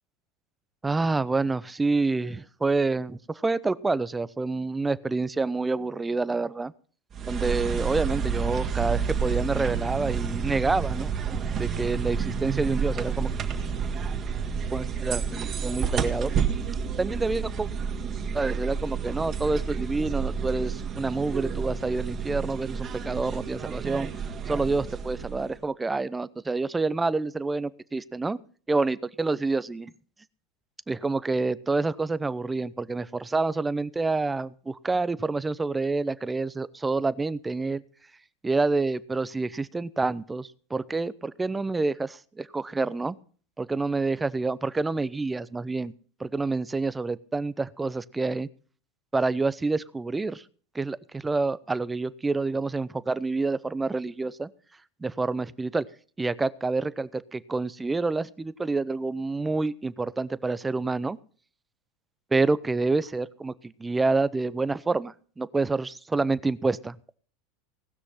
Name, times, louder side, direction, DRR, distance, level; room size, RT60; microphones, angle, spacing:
voice 1, 0.8-6.7 7.3-13.3 14.7-16.3 17.0-17.7 18.3-24.1 24.5-28.4 28.7-29.9 30.9-37.8 38.4-43.2 43.6-45.9 46.2-48.5 49.1-50.4 50.7-54.5 55.0-55.9 56.2-61.2 62.3-67.0, right 3 dB, 15° right, 18 dB, 0.7 m, -28 dB
sound 1, 7.1-25.6, right 6 dB, 35° right, 2.1 m, -30 dB
18.5 x 6.3 x 5.7 m, 0.42 s
hypercardioid pair, 105°, 0 cm